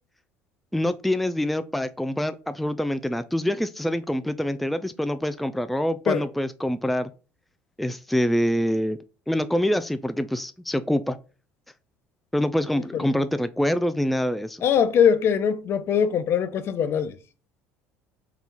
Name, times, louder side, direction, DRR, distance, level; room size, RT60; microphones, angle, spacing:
voice 1, 0.7-7.1 7.8-9.0 9.3-11.2 12.3-14.6, equal, ahead, 0.3 m, -25 dB
voice 2, 14.6-17.1, left 8 dB, 50° left, 0.6 m, -22 dB
3.9 x 2.4 x 4.3 m
supercardioid pair, 80°, 5 cm